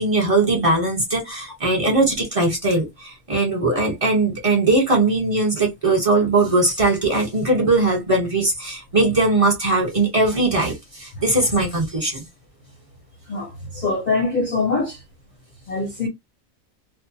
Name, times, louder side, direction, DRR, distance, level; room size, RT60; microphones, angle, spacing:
voice 1, 0.0-12.2, right 2 dB, 25° right, 1.0 m, -20 dB
voice 2, 13.3-15.0 15.7-16.1, left 3 dB, 40° left, 0.7 m, -23 dB
2.4 x 2.2 x 2.7 m
omnidirectional pair, 1.4 m